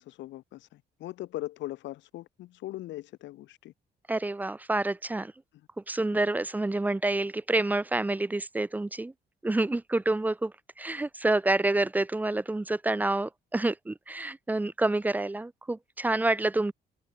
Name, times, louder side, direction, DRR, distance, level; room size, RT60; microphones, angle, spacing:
voice 1, 0.0-3.7 6.1-6.2, left 15 dB, 80° left, 4.1 m, -40 dB
voice 2, 4.1-5.3 5.9-9.1 9.4-16.7, right 2 dB, 10° right, 0.4 m, -28 dB
cardioid pair, 85°, 19 cm